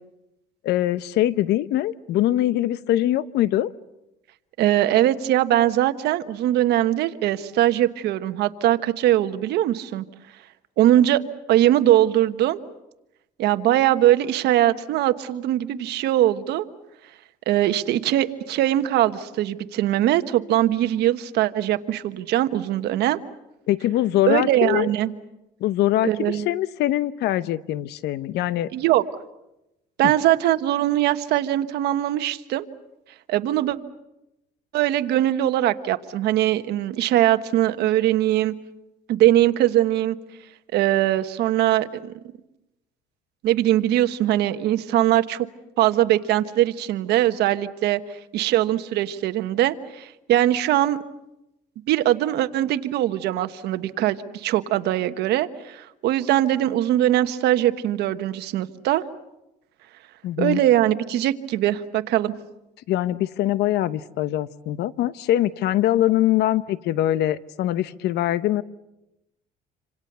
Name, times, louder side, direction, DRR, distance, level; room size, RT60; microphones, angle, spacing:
voice 1, 0.6-3.7 23.7-24.9 25.6-28.7 30.0-30.1 60.2-60.6 62.9-68.6, left 13 dB, 80° left, 16 dB, 0.9 m, -23 dB
voice 2, 4.6-10.0 10.8-11.2 11.5-12.6 13.4-16.7 17.5-23.2 24.3-25.1 26.0-26.4 28.7-29.0 30.0-32.7 33.3-33.8 34.7-38.5 39.1-40.2 40.7-42.1 43.4-45.5 45.8-48.0 48.3-51.0 51.9-59.0 60.4-62.3, right 13 dB, 80° right, 10 dB, 1.2 m, -21 dB
27.0 x 26.5 x 6.8 m, 0.92 s
cardioid pair, 110°, 17 cm